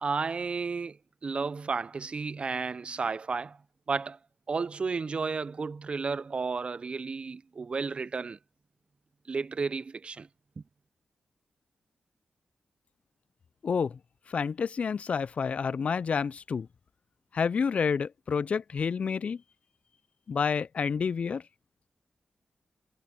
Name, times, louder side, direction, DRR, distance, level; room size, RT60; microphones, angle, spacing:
voice 1, 0.0-1.0 1.2-3.6 3.9-4.2 4.5-8.4 9.3-10.3 10.6-10.7, right 4 dB, 50° right, 0.5 m, -32 dB
voice 2, 13.6-14.0 14.3-16.7 17.3-19.4 20.3-21.4, left 6 dB, 65° left, 0.4 m, -29 dB
cardioid pair, 50°, 2 cm